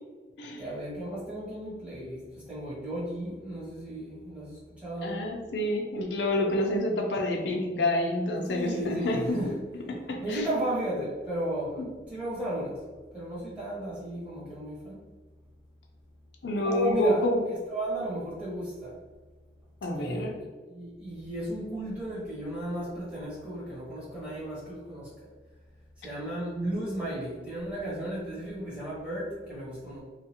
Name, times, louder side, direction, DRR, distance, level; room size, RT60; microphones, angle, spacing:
voice 1, 0.6-5.3 8.4-9.6 10.2-12.8 13.1-15.1 16.6-17.2 17.7-19.0 19.9-25.3 26.0-30.0, right 1 dB, 5° right, -9 dB, 1.1 m, -34 dB
voice 2, 5.0-9.4 9.9-10.5 11.8-11.9 16.4-17.4 19.8-20.3, left 1 dB, 85° left, 2 dB, 0.5 m, -28 dB
2.8 x 2.4 x 2.8 m, 1.4 s
head